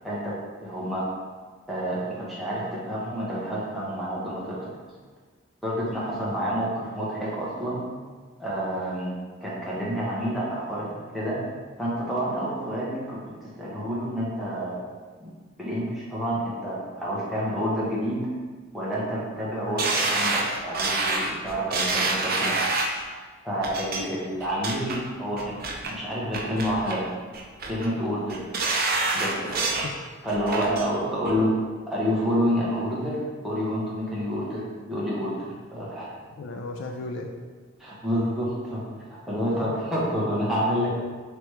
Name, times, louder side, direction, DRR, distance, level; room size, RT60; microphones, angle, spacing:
voice 1, 0.6-1.1 1.7-4.7 5.6-7.8 8.4-9.1 9.4-11.4 11.8-14.8 15.2-15.3 15.6-18.2 18.7-22.6 23.4-25.6 25.9-27.1 27.7-28.5 29.1-29.6 30.2-31.5 31.9-33.2 33.4-36.1 37.8-39.0 39.3-40.9, equal, ahead, -8 dB, 1.0 m, -28 dB
sound 1, 19.8-23.0 23.6-24.0 24.4-25.0 25.4-25.9 26.3-27.0 27.3-27.9 28.3-29.9 30.3-30.9 31.3-31.4, right 3 dB, 50° right, 0.5 m, -27 dB
voice 2, 29.4-30.0 36.4-37.3 39.4-39.8, left 2 dB, 65° left, 1 dB, 0.4 m, -36 dB
3.3 x 3.0 x 4.7 m, 1.5 s
head